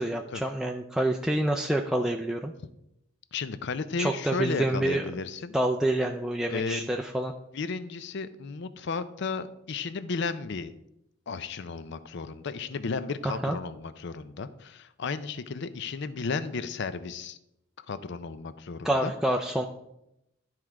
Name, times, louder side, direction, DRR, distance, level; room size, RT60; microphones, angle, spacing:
voice 1, 0.0-2.5 4.0-5.1 5.5-7.3 13.2-13.6 18.8-19.7, right 1 dB, 5° right, 1 dB, 0.3 m, -27 dB
voice 2, 3.3-5.5 6.5-6.8 7.5-10.7 11.3-17.4 17.9-19.1, left 4 dB, 60° left, 13 dB, 0.5 m, -34 dB
12.0 x 4.6 x 3.6 m, 0.84 s
head